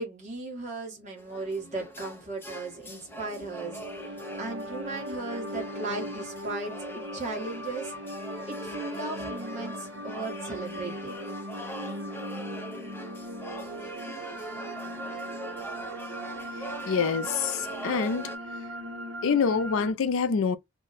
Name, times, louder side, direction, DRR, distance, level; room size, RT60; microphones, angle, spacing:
voice 1, 0.0-3.8 4.1-6.7 7.1-7.9 8.5-11.2, right 3 dB, 30° right, 1.2 m, -36 dB
sound 1, 1.2-18.4, right 1 dB, 10° left, 0.5 m, -42 dB
sound 2, 2.9-19.9, equal, 55° right, 0.6 m, -39 dB
voice 2, 16.6-18.3 19.2-20.6, left 5 dB, 65° left, 0.4 m, -26 dB
2.6 x 2.1 x 3.9 m
head